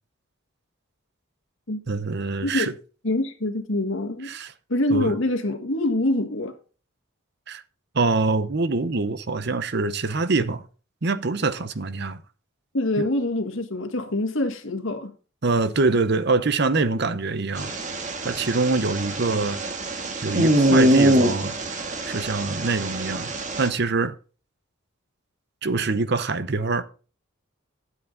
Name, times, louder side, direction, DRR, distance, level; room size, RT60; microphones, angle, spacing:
voice 1, 1.9-2.7 4.2-4.5 4.9-5.1 7.5-7.6 7.9-10.7 11.0-12.2 13.0-13.1 15.4-17.7 18.2-19.6 20.2-21.6 22.1-23.3 23.6-24.1 25.6-26.8, right 3 dB, 55° right, 0.8 m, -24 dB
voice 2, 3.0-4.3 4.7-6.6 12.7-15.1, left 1 dB, 65° left, 1.8 m, -25 dB
sound 1, 17.6-23.7, right 1 dB, 35° right, 1.5 m, -23 dB
12.0 x 7.4 x 4.0 m
head